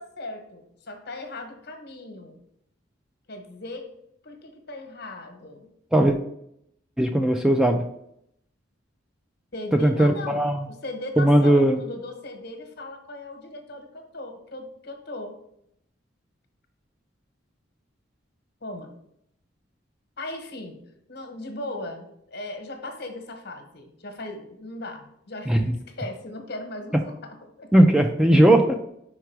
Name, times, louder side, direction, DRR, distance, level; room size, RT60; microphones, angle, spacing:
voice 1, 0.0-2.4 3.3-3.9 4.2-5.7 9.5-15.4 18.6-18.9 20.2-20.8 21.1-27.7, left 2 dB, 55° left, 5 dB, 1.1 m, -38 dB
voice 2, 7.0-7.8 9.8-10.7 11.2-11.8 25.5-25.6 27.7-28.8, right 1 dB, 5° right, 5 dB, 0.3 m, -18 dB
4.8 x 4.7 x 4.5 m, 0.75 s
head